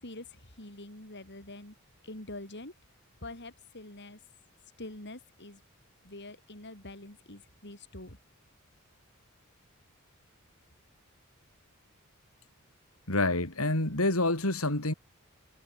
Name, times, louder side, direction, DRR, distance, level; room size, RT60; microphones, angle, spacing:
voice 1, 0.0-1.7 2.0-2.7 3.2-4.2 4.8-5.6 6.0-8.2, left 2 dB, 55° left, 6.6 m, -45 dB
voice 2, 13.1-14.9, left 2 dB, 90° left, 4.9 m, -27 dB
head